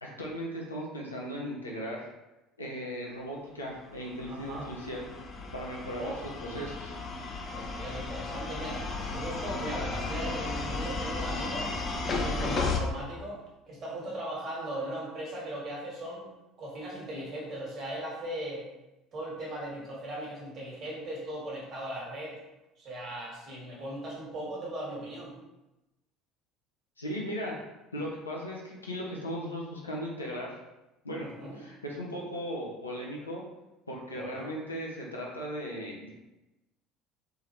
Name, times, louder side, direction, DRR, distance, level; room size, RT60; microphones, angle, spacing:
voice 1, 0.0-2.1 2.6-5.1 5.5-6.1 6.4-6.9 27.0-27.6 27.9-30.6 31.0-33.4 33.9-36.1, equal, 85° left, -3 dB, 0.6 m, -37 dB
sound 1, 3.9-12.8, left 3 dB, 35° left, 0.5 m, -34 dB
voice 2, 4.3-4.6 6.0-6.2 7.5-11.7 12.0-13.4 13.7-16.3 16.6-18.7 19.1-22.4 22.8-25.3 31.2-31.6 34.1-34.5, right 1 dB, 45° right, -4 dB, 1.4 m, -38 dB
3.8 x 2.7 x 3.0 m, 0.99 s
figure-of-eight pair, 60°, 0 cm